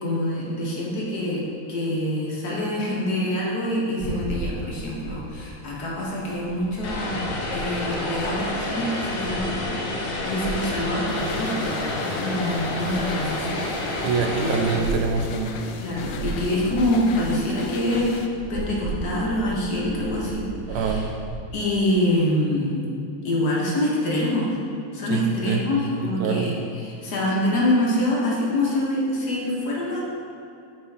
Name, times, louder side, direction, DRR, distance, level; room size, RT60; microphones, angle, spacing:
voice 1, 0.0-1.4 1.7-11.8 12.1-13.6 13.9-14.0 14.4-14.9 15.8-18.1 18.5-21.0 21.5-22.8 23.2-24.5 24.9-26.6 26.8-30.0, left 1 dB, 50° left, -4 dB, 1.7 m, -25 dB
sound 1, 4.0-21.4, right 3 dB, 60° right, 1.1 m, -37 dB
Vehicle, 6.8-14.8, left 2 dB, 65° left, 1.7 m, -29 dB
sound 2, 11.1-18.3, left 6 dB, 80° left, 1.4 m, -37 dB
voice 2, 14.0-15.6 20.7-21.1 25.1-25.7 26.0-26.5, right 5 dB, 90° right, 4 dB, 1.6 m, -25 dB
8.7 x 4.7 x 3.5 m, 2.6 s
omnidirectional pair, 2.4 m